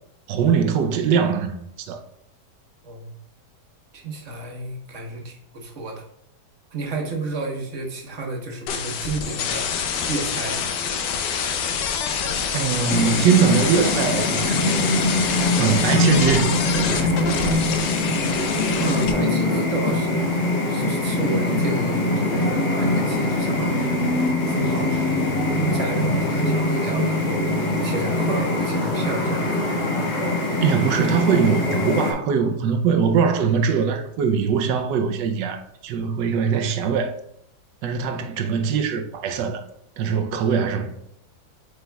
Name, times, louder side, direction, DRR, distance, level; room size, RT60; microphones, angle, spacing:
voice 1, 0.3-2.0 12.5-15.0 15.6-16.5 16.9-17.1 30.6-37.1 37.8-39.7 40.0-41.0, right 6 dB, 80° right, 1.3 m, -22 dB
voice 2, 3.9-6.1 6.7-9.7 10.1-10.6 18.8-20.2 20.7-24.0 24.5-25.3 25.6-27.5 27.8-29.8, right 2 dB, 50° right, 1.4 m, -31 dB
sound 1, 8.7-19.1, left 7 dB, 85° left, 1.4 m, -26 dB
sound 2, 12.9-32.1, left 2 dB, 65° left, 2.1 m, -23 dB
8.2 x 5.1 x 2.3 m
omnidirectional pair, 1.9 m